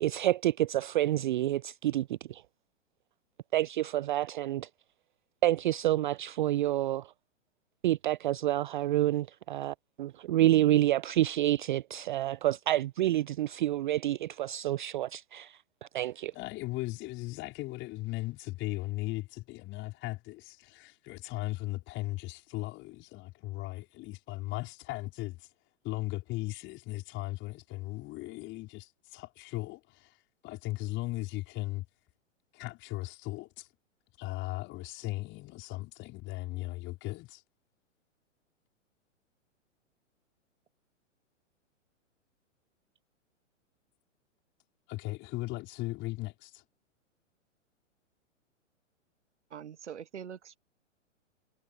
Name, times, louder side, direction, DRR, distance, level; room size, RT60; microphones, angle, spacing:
voice 1, 0.0-2.4 3.5-4.7 5.4-7.1 7.8-15.6 15.9-16.3, right 14 dB, 40° right, 0.5 m, -28 dB
voice 2, 16.3-25.5 25.8-30.1 30.4-31.8 32.5-33.7 34.2-37.4 44.9-46.6, left 19 dB, 30° left, 4.8 m, -37 dB
voice 3, 49.5-50.6, right 8 dB, 65° right, 1.8 m, -43 dB
figure-of-eight pair, 110°, 38 cm